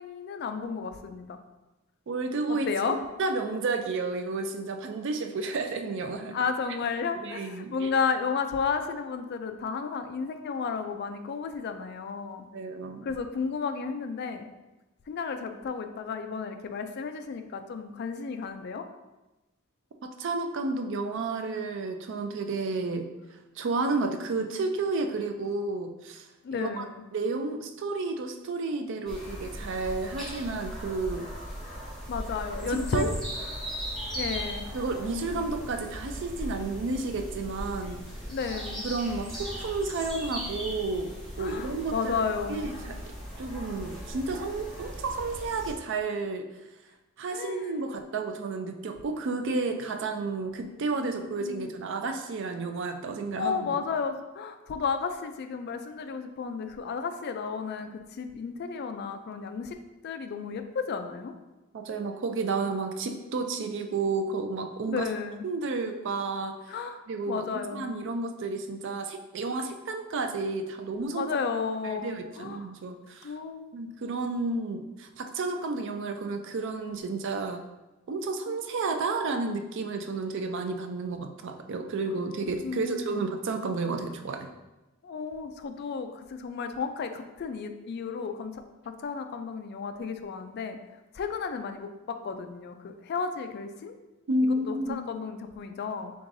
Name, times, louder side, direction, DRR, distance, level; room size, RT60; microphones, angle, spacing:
voice 1, 0.0-1.4 2.5-3.0 6.3-12.5 13.0-14.5 15.1-18.9 26.4-27.0 32.1-33.1 34.1-34.6 38.3-38.8 41.4-42.7 47.3-47.8 51.0-51.6 53.3-59.8 60.0-61.3 64.9-65.4 66.7-67.9 69.5-69.6 71.1-72.7 73.2-73.7 78.5-78.6 82.6-83.3 85.0-90.8 91.1-93.9 94.5-96.1, left 5 dB, 50° left, 8 dB, 0.3 m, -33 dB
voice 2, 2.1-6.4 7.2-7.9 12.5-13.1 20.0-23.1 23.6-26.3 26.5-26.8 27.1-31.3 32.6-33.1 34.7-38.0 38.8-42.1 42.5-43.0 43.4-46.5 47.2-53.7 61.7-65.1 65.4-66.6 67.1-71.3 71.8-73.3 73.7-77.6 78.1-84.5 94.3-95.0, right 3 dB, 60° right, 6 dB, 0.4 m, -31 dB
sound 1, 29.1-45.7, equal, ahead, 0.9 m, -38 dB
4.7 x 3.6 x 2.6 m, 1.1 s
head